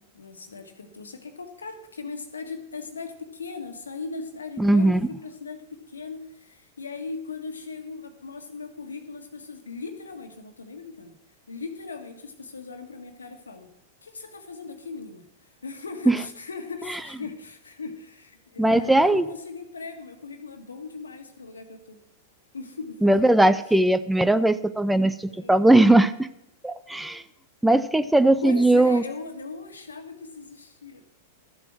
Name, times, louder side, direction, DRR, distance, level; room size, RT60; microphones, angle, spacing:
voice 1, 0.0-11.2 11.5-13.7 14.0-22.0 22.5-23.3 25.2-25.7 28.4-31.0, left 4 dB, 85° left, 5 dB, 1.6 m, -39 dB
voice 2, 4.6-5.1 16.1-16.2 16.9-17.0 18.6-19.2 23.0-26.3 26.6-27.2 27.6-29.0, right 1 dB, 5° right, 13 dB, 0.5 m, -19 dB
13.5 x 7.5 x 6.1 m, 0.80 s
hypercardioid pair, 100°, 0 cm